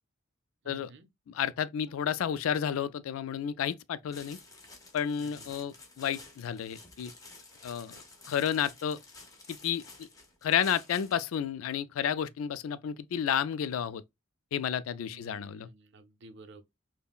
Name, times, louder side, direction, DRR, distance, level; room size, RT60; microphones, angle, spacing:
voice 1, 0.6-1.1 5.2-5.5 15.1-16.6, right 2 dB, 60° right, 0.6 m, -53 dB
voice 2, 1.3-4.4 4.9-7.1 7.6-8.0 8.3-9.0 9.5-10.1 10.4-14.0 14.5-15.7, left 8 dB, 90° left, 0.3 m, -31 dB
sound 1, 4.1-11.3, left 3 dB, 15° left, 0.9 m, -52 dB
5.4 x 2.1 x 2.3 m
head